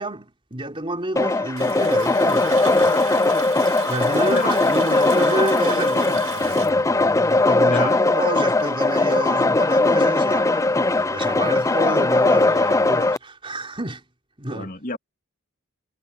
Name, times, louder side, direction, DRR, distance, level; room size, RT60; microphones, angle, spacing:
voice 1, 0.0-3.0 3.9-14.0 14.4-14.7, right 1 dB, 25° right, 3.8 m, -29 dB
sound 1, 1.2-13.2, left 2 dB, 15° left, 0.4 m, -19 dB
Water tap faucet, 1.6-8.1 8.4-8.5 8.9-9.1, right 7 dB, 65° right, 2.5 m, -36 dB
voice 2, 7.7-8.0 14.5-15.0, left 3 dB, 40° left, 2.7 m, -30 dB
head